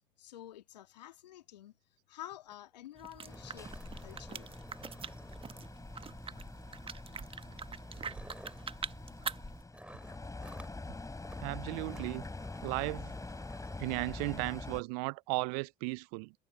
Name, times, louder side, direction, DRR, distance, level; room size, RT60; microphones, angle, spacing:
voice 1, 0.2-1.7 2.1-3.7 4.0-4.5, left 13 dB, 80° left, 2.2 m, -49 dB
sound 1, 2.5-2.6 2.8-2.9 3.2-6.0 7.0-7.2 7.7-8.7 9.7-10.8 11.2-11.4 11.7-13.9, right 1 dB, 5° right, 4.3 m, -54 dB
sound 2, 3.0-9.6, right 6 dB, 25° right, 1.2 m, -44 dB
sound 3, 3.3-14.8, left 3 dB, 15° left, 5.5 m, -45 dB
voice 2, 11.4-12.2 12.6-13.2 13.8-16.3, right 33 dB, 65° right, 0.4 m, -35 dB
hypercardioid pair, 65°, 21 cm